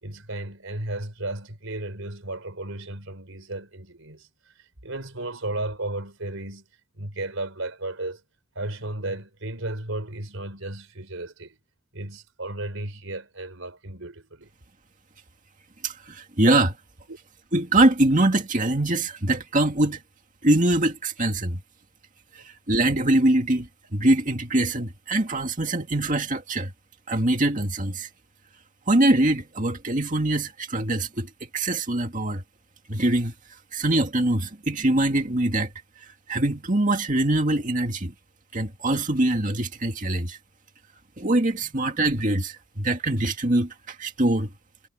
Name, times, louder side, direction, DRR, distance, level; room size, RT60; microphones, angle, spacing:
voice 1, 0.0-4.3 4.6-6.6 7.0-8.2 8.6-11.6 11.9-14.5 17.1-17.2 25.7-25.8, right 2 dB, 70° right, 4.1 m, -34 dB
voice 2, 15.8-16.8 17.5-20.0 20.4-21.6 22.3-26.7 27.1-28.1 28.9-32.4 32.9-33.3 33.7-35.7 36.3-38.1 38.5-40.4 41.2-44.5, right 1 dB, 40° right, 2.2 m, -23 dB
head